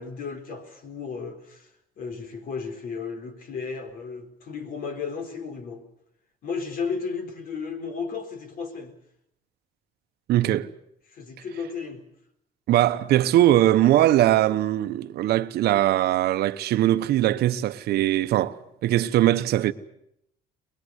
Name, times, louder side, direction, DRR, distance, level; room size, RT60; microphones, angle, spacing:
voice 1, 0.0-1.7 2.0-5.8 6.4-8.9 11.1-12.0, left 5 dB, 60° left, 4.2 m, -34 dB
voice 2, 10.3-10.7 12.7-18.6 18.8-19.7, right 13 dB, 70° right, 1.1 m, -21 dB
23.5 x 21.0 x 8.1 m
cardioid pair, 110°, 17 cm